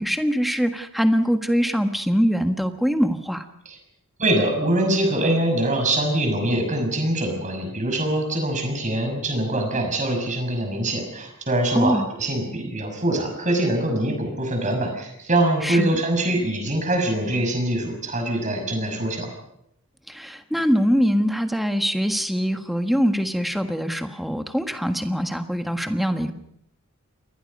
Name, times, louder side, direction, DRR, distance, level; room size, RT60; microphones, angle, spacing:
voice 1, 0.0-3.5 11.7-12.1 15.6-16.0 20.1-26.3, equal, ahead, 7 dB, 1.4 m, -23 dB
voice 2, 4.2-19.3, right 1 dB, 35° right, 4 dB, 6.3 m, -23 dB
29.0 x 21.0 x 5.4 m, 0.78 s
head